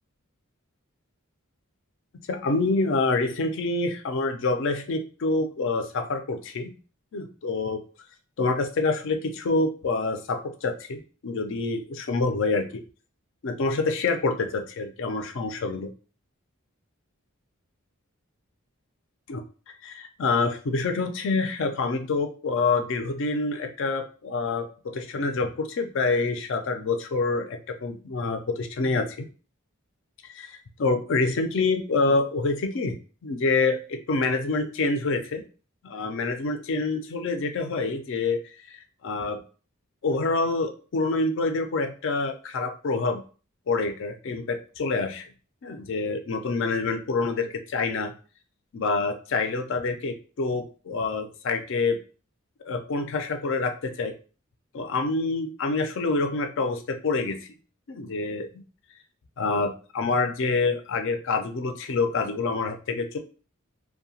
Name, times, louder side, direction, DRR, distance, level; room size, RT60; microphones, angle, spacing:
voice 1, 2.3-6.7 7.1-7.8 8.4-12.7 13.4-15.9 19.3-19.4 19.8-29.2 30.3-33.0 33.2-35.4 35.8-38.4 38.7-39.4 40.0-43.2 43.7-45.2 45.6-48.1 48.7-52.0 52.7-54.1 54.7-57.4 57.9-58.5 59.4-63.2, left 3 dB, 60° left, 6 dB, 0.4 m, -27 dB
2.7 x 2.1 x 2.7 m, 0.37 s
head